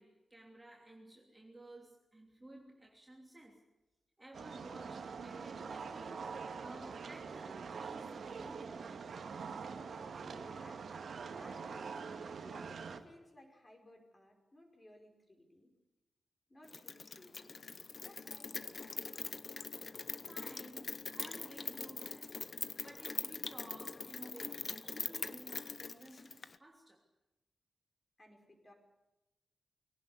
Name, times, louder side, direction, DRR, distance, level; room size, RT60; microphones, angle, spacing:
voice 1, 0.0-3.6 4.2-8.7 19.7-19.8 20.3-27.0, right 1 dB, 10° right, 0 dB, 3.0 m, -55 dB
sound 1, 4.3-13.0, right 5 dB, 55° right, 2.2 m, -44 dB
voice 2, 10.2-15.7 16.5-17.6 18.0-19.2 28.2-28.7, left 1 dB, 20° left, 3 dB, 5.1 m, -60 dB
Rain, 16.7-26.6, left 4 dB, 35° left, 1.0 m, -43 dB
23.0 x 18.0 x 9.8 m, 0.97 s
wide cardioid pair, 175°, 0 cm